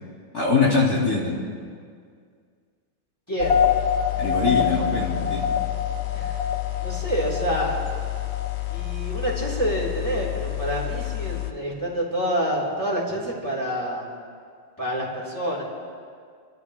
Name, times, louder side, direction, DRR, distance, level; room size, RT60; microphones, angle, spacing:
voice 1, 0.3-1.3 4.2-5.5, left 4 dB, 50° left, -6 dB, 2.7 m, -22 dB
voice 2, 3.3-3.6 6.1-6.4 6.8-7.8 8.7-14.1 14.8-15.6, equal, 10° left, -5 dB, 3.7 m, -27 dB
sound 1, 3.4-11.5, left 9 dB, 70° left, 0.6 m, -26 dB
28.0 x 13.5 x 3.3 m, 2.1 s
omnidirectional pair, 2.2 m